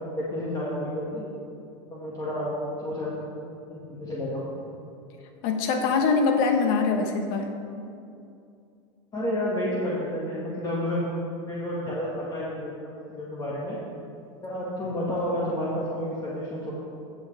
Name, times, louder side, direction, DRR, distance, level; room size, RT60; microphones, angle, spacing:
voice 1, 0.2-1.3 1.9-3.1 3.7-4.4 9.1-11.0 11.4-12.7 13.1-13.8 14.4-16.7, left 1 dB, 25° left, -6 dB, 1.9 m, -30 dB
voice 2, 5.4-7.5, left 4 dB, 60° left, 5 dB, 1.2 m, -23 dB
15.5 x 6.4 x 3.4 m, 2.5 s
hypercardioid pair, 100°, 16 cm